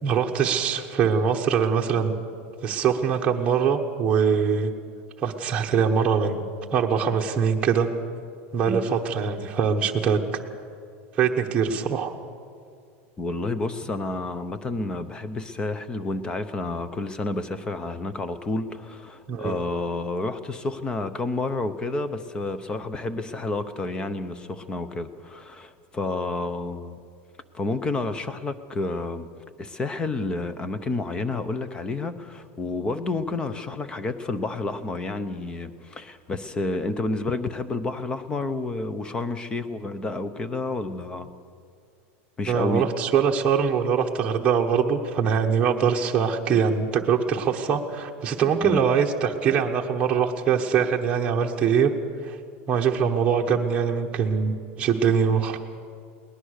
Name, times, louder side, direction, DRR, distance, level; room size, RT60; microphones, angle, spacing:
voice 1, 0.0-2.1 2.6-4.7 5.2-6.4 6.7-7.9 8.5-10.2 11.1-12.1 19.3-19.6 42.5-51.9 52.2-52.4 52.7-55.6, right 7 dB, 15° right, -1 dB, 1.1 m, -23 dB
voice 2, 13.2-27.0 27.5-29.3 29.6-41.3 42.4-42.9 48.6-48.9, left 2 dB, 10° left, 12 dB, 0.8 m, -30 dB
21.5 x 19.0 x 6.6 m, 2.3 s
supercardioid pair, 175°, 7 cm